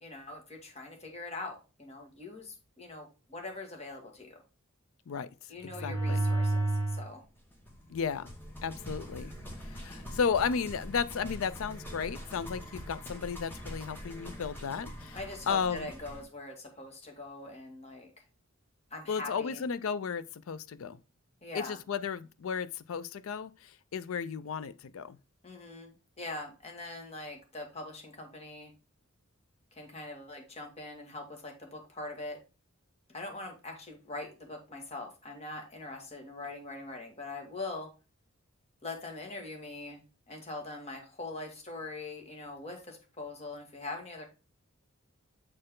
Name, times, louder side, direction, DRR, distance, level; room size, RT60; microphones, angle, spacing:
voice 1, 0.0-4.4 5.5-7.2 15.1-18.1 18.9-19.6 21.4-21.8 25.4-28.7 29.7-32.4 33.1-37.9 38.8-40.0 40.3-44.3, left 2 dB, 30° left, 1.8 m, -42 dB
voice 2, 5.6-6.2 7.9-8.3 8.6-9.3 9.7-15.2 15.5-15.9 19.1-21.0 21.5-25.2, left 6 dB, 70° left, 0.4 m, -34 dB
sound 1, 5.6-7.1 7.7-16.2, right 2 dB, 10° left, 1.4 m, -37 dB
7.6 x 4.4 x 3.7 m
head